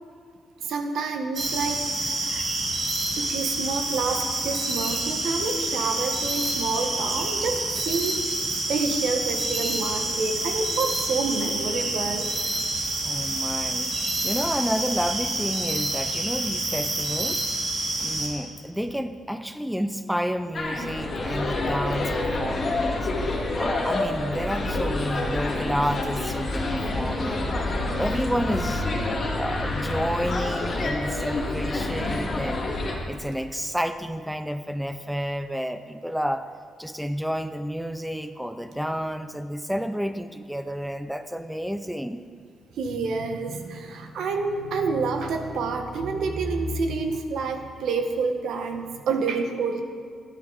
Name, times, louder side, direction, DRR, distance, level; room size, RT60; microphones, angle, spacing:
voice 1, 0.6-2.5 3.2-8.3 8.7-12.3 42.8-49.8, right 4 dB, 75° right, 5 dB, 1.2 m, -28 dB
sound 1, 1.3-18.3, right 2 dB, 45° right, 2.5 m, -28 dB
voice 2, 13.0-17.5 18.0-23.1 23.6-27.5 28.0-32.7 33.1-36.5 36.8-42.2, equal, ahead, 9 dB, 0.4 m, -30 dB
sound 2, 20.5-33.0, left 2 dB, 35° left, 1.9 m, -27 dB
16.0 x 10.5 x 4.0 m, 2.2 s
cardioid pair, 150°, 0 cm